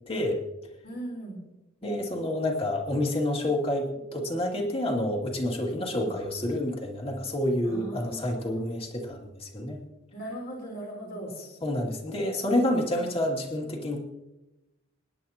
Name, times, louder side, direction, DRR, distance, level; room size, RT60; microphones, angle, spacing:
voice 1, 0.1-0.4 1.8-9.8 11.4-14.0, left 1 dB, 30° left, 0 dB, 2.3 m, -28 dB
voice 2, 0.8-1.4 5.6-6.1 7.6-8.6 10.1-11.3 12.7-13.1, right 1 dB, 55° left, -2 dB, 3.9 m, -39 dB
26.0 x 10.5 x 2.8 m, 0.99 s
head